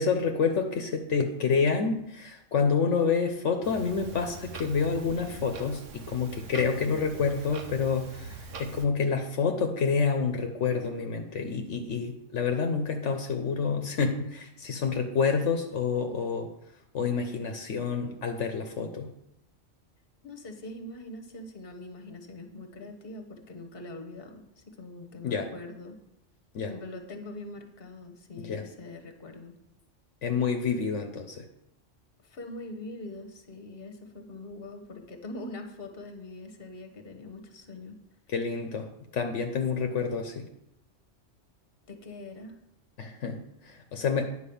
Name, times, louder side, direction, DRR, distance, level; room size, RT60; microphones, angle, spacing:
voice 1, 0.0-16.5 16.9-19.1 25.2-25.5 26.5-26.7 28.5-28.6 30.2-31.4 38.3-38.9 39.1-40.5 43.0-44.2, left 5 dB, 75° left, 5 dB, 1.1 m, -28 dB
Clock, 3.6-8.8, right 4 dB, 90° right, 1.3 m, -43 dB
voice 2, 20.2-26.0 26.6-29.5 32.2-38.0 41.9-42.6, left 2 dB, 50° left, 5 dB, 1.3 m, -43 dB
10.0 x 4.6 x 7.0 m, 0.82 s
omnidirectional pair, 1.2 m